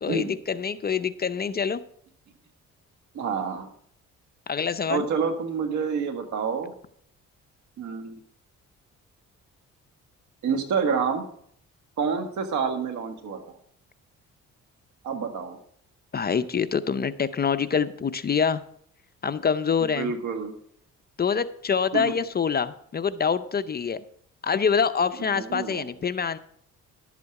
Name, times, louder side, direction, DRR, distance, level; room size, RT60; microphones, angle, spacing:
voice 1, 0.0-1.8 4.5-5.1 16.1-18.6 19.2-20.1 21.2-24.0 24.4-26.4, left 6 dB, 30° left, 12 dB, 0.6 m, -25 dB
voice 2, 3.1-3.7 4.9-6.7 7.8-8.2 10.4-11.2 12.0-13.4 15.0-15.6 19.8-20.5 21.9-22.1 25.2-25.9, right 6 dB, 70° right, 5 dB, 1.8 m, -28 dB
11.5 x 8.3 x 4.8 m, 0.64 s
cardioid pair, 90°, 30 cm